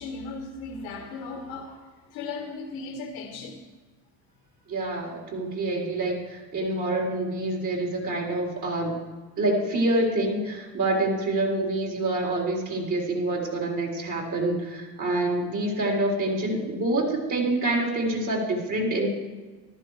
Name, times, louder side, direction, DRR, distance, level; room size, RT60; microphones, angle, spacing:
voice 1, 0.0-3.6, left 3 dB, 75° left, 2 dB, 1.7 m, -37 dB
voice 2, 4.7-8.9 9.4-19.1, right 2 dB, 45° right, 0 dB, 4.2 m, -26 dB
14.0 x 12.0 x 4.9 m, 1.3 s
supercardioid pair, 80°, 43 cm